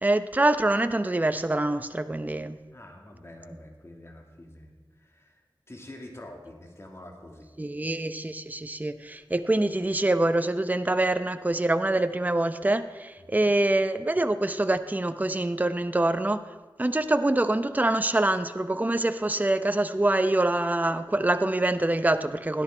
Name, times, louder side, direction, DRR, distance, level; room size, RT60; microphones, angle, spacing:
voice 1, 0.0-2.6 7.6-16.4 16.8-22.6, right 2 dB, 20° right, 10 dB, 0.7 m, -25 dB
voice 2, 2.7-5.4 5.7-7.5 13.2-13.5, left 1 dB, 35° left, 2 dB, 2.1 m, -46 dB
17.0 x 11.0 x 4.4 m, 1.3 s
wide cardioid pair, 55°, 8 cm